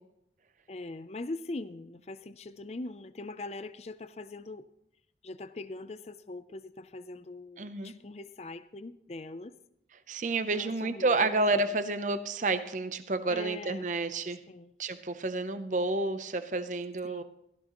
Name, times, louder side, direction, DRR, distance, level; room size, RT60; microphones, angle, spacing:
voice 1, 0.7-4.7 5.2-9.6 10.5-11.8 13.3-13.9 14.5-14.7 17.0-17.2, left 2 dB, 35° left, 13 dB, 0.5 m, -42 dB
voice 2, 7.6-7.9 10.1-14.4 14.8-17.2, right 3 dB, 45° right, 10 dB, 0.7 m, -30 dB
16.5 x 14.0 x 3.0 m, 0.77 s
head